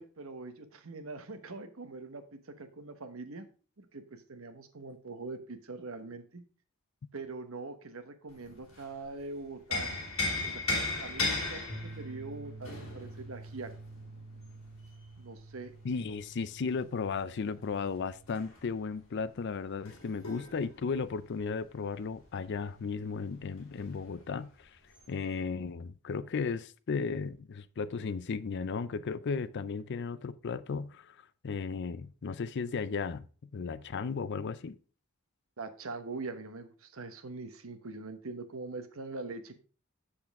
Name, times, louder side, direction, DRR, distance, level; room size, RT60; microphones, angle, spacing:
voice 1, 0.0-3.4 3.8-6.4 7.1-9.9 10.4-13.7 15.2-16.2 35.6-39.6, right 3 dB, 75° right, 1.1 m, -43 dB
sound 1, 8.3-9.1 9.4-14.9 16.9-22.6 22.9-23.0 23.4-24.1 24.9-25.1, left 3 dB, 70° left, 3.2 m, -37 dB
sound 2, 11.7-18.3, right 2 dB, 20° right, 2.8 m, -48 dB
voice 2, 15.8-24.7 25.1-31.2 31.4-34.8, left 5 dB, 55° left, 0.4 m, -35 dB
7.7 x 7.0 x 3.5 m
head